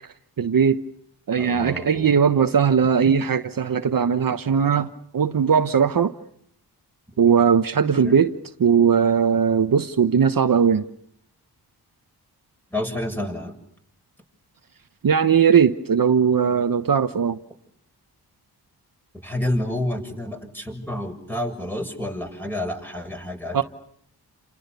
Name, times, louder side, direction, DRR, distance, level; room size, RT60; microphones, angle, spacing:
voice 1, 0.4-0.8 1.3-6.1 7.2-8.3 8.6-10.9 15.0-17.4 23.5-23.6, right 7 dB, 55° right, 1.1 m, -19 dB
voice 2, 1.4-2.1 8.0-8.2 12.7-13.5 19.2-23.6, left 1 dB, 5° left, 7.1 m, -29 dB
30.0 x 27.5 x 6.9 m
cardioid pair, 70°, 40 cm